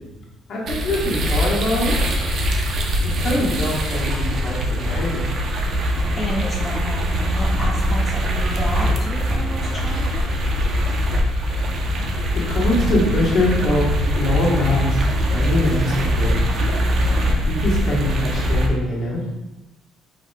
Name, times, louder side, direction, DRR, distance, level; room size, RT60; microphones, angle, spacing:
voice 1, 0.5-2.0 3.2-5.3 12.5-15.0 15.3-16.4 17.5-19.3, left 1 dB, 55° left, -5 dB, 1.5 m, -23 dB
sound 1, 0.7-18.7, equal, 45° right, 0.6 m, -22 dB
voice 2, 6.2-10.3, left 1 dB, 10° left, -3 dB, 0.5 m, -31 dB
4.8 x 2.2 x 4.7 m, 1.0 s
cardioid pair, 155°, 0 cm